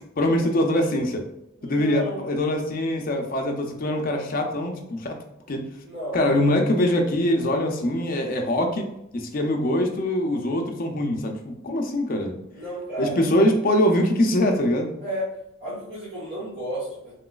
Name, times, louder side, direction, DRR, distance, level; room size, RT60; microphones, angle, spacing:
voice 1, 0.2-1.2 1.6-5.2 5.5-5.6 6.1-8.9 9.1-12.4 13.0-14.9, left 1 dB, 45° left, 3 dB, 0.5 m, -23 dB
voice 2, 1.6-2.2 5.8-6.2 12.5-13.3 15.0-15.3 15.6-17.1, equal, 50° right, -9 dB, 1.1 m, -32 dB
3.1 x 2.9 x 2.3 m, 0.83 s
head